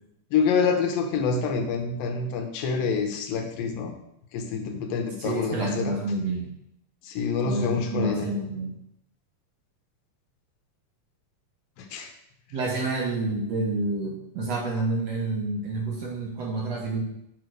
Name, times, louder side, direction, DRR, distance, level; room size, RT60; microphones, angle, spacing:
voice 1, 0.3-3.9 4.3-5.9 7.0-8.3 11.9-12.1, left 5 dB, 85° left, 4 dB, 2.7 m, -26 dB
voice 2, 5.2-6.5 7.4-8.7 12.5-17.0, right 2 dB, 65° right, -1 dB, 1.8 m, -28 dB
7.3 x 5.1 x 6.2 m, 0.80 s
omnidirectional pair, 4.0 m